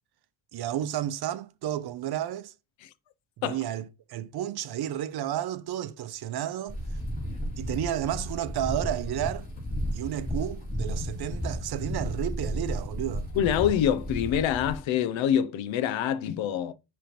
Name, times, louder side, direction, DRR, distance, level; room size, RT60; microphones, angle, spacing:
voice 1, 0.5-2.5 3.4-6.8 7.6-9.4 9.9-13.3, right 11 dB, 55° right, 0.6 m, -32 dB
sound 1, 6.7-14.8, equal, 20° left, 3.1 m, -33 dB
voice 2, 13.3-16.7, left 9 dB, 85° left, 0.7 m, -26 dB
10.0 x 3.4 x 3.0 m
cardioid pair, 155°, 45 cm